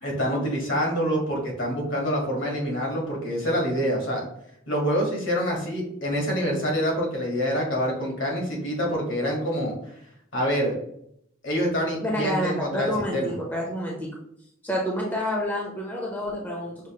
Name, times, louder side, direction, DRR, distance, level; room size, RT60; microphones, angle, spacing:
voice 1, 0.0-4.2 4.7-9.7 10.3-10.7 11.4-13.3, equal, 60° left, -1 dB, 1.5 m, -26 dB
voice 2, 12.0-14.1 14.6-16.9, equal, 10° left, -3 dB, 0.7 m, -28 dB
6.0 x 2.6 x 3.0 m, 0.74 s
head